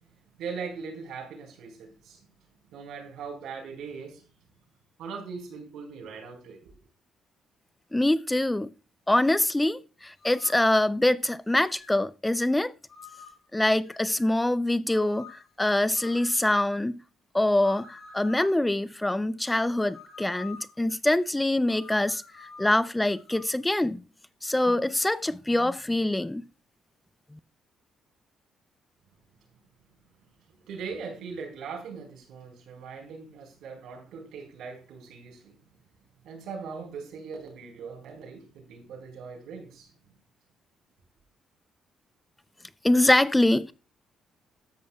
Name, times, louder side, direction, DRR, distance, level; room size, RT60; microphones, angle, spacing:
voice 1, 0.4-2.3 2.7-4.2 5.0-6.7 30.7-35.5 36.2-39.9, right 5 dB, 80° right, 4.5 m, -40 dB
voice 2, 7.9-8.7 9.1-12.7 13.5-15.3 15.6-17.0 17.3-24.0 24.4-26.5 42.8-43.7, left 1 dB, 10° left, 0.4 m, -24 dB
sound 1, 10.2-10.8 11.5-12.0 12.9-13.5 13.8-14.4 14.9-15.5 16.0-16.4 17.6-18.5 19.5-20.8 21.6-23.5, left 6 dB, 50° left, 3.7 m, -48 dB
13.0 x 10.5 x 2.3 m
cardioid pair, 90°, 0 cm